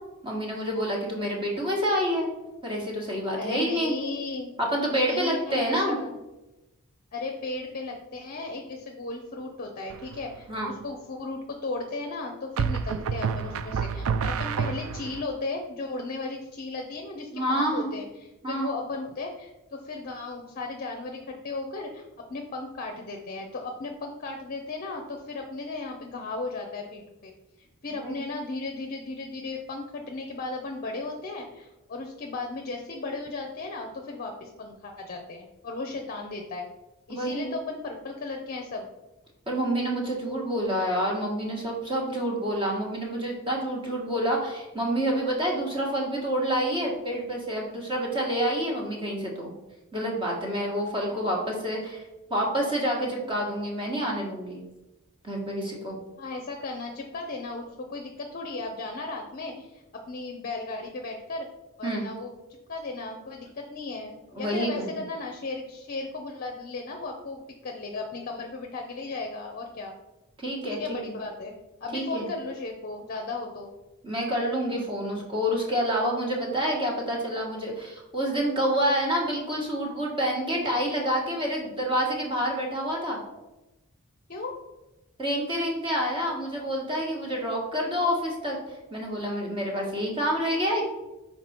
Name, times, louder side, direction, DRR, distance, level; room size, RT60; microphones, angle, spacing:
voice 1, 0.2-2.3 2.6-3.9 4.6-6.0 10.5-10.7 17.3-17.9 18.4-18.7 27.9-28.2 37.1-37.5 39.5-49.5 49.9-52.0 52.3-54.6 55.2-56.0 61.8-62.0 64.3-64.9 70.4-71.0 71.9-72.3 74.0-83.2 85.2-88.6 88.9-90.8, equal, 25° right, -2 dB, 1.6 m, -28 dB
voice 2, 3.3-4.5 5.0-6.1 7.1-27.3 27.6-36.7 37.1-38.9 50.9-51.3 56.2-61.5 61.8-70.0 70.7-71.5 71.8-73.7 84.3-84.6, left 3 dB, 45° left, 2 dB, 0.6 m, -36 dB
sound 1, 9.9-10.4 12.6-15.2, right 6 dB, 65° right, 0.4 m, -29 dB
5.9 x 4.4 x 4.4 m, 1.0 s
head